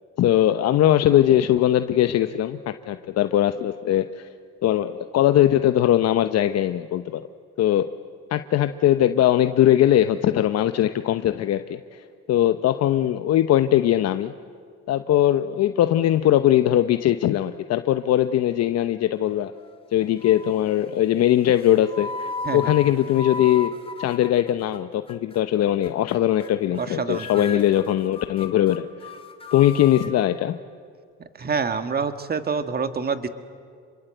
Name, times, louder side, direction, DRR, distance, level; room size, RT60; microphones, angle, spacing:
voice 1, 0.2-4.3 4.6-7.3 7.6-7.9 8.3-11.8 12.3-14.3 14.9-19.5 19.9-23.7 24.0-29.1 29.5-30.6, left 12 dB, 60° left, 9 dB, 0.9 m, -20 dB
sound 1, 19.3-19.8 20.2-20.7 21.5-24.8 25.1-25.4 25.8-26.2 26.4-26.9 27.1-30.1, left 4 dB, 20° left, 2.2 m, -36 dB
voice 2, 26.8-27.6 31.4-33.3, right 5 dB, 35° right, 9 dB, 2.0 m, -27 dB
28.5 x 23.0 x 8.0 m, 2.2 s
supercardioid pair, 85°, 29 cm